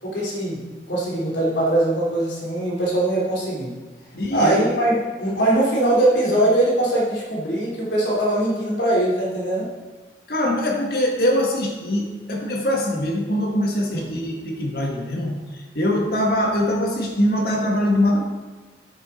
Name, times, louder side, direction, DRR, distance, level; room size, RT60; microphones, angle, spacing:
voice 1, 0.0-0.6 0.9-3.7 4.3-9.7 13.9-14.0, right 1 dB, 85° left, -5 dB, 3.2 m, -21 dB
voice 2, 4.1-4.6 10.3-18.2, left 1 dB, 55° left, 0 dB, 1.7 m, -22 dB
9.6 x 7.2 x 4.3 m, 1.3 s
head